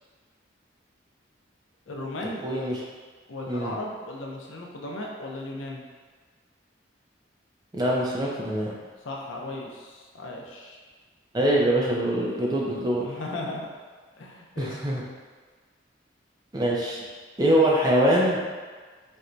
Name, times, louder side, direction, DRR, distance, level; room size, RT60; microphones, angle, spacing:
voice 1, 1.9-2.4 3.3-5.9 9.0-10.8 13.0-13.7 14.2-14.8, left 2 dB, 80° left, -1 dB, 0.5 m, -36 dB
voice 2, 2.4-2.8 3.5-3.7 7.7-8.7 11.3-13.1 14.6-15.0 16.5-17.0 17.4-18.4, right 1 dB, 20° right, -4 dB, 0.4 m, -23 dB
4.3 x 2.1 x 2.5 m, 1.5 s
head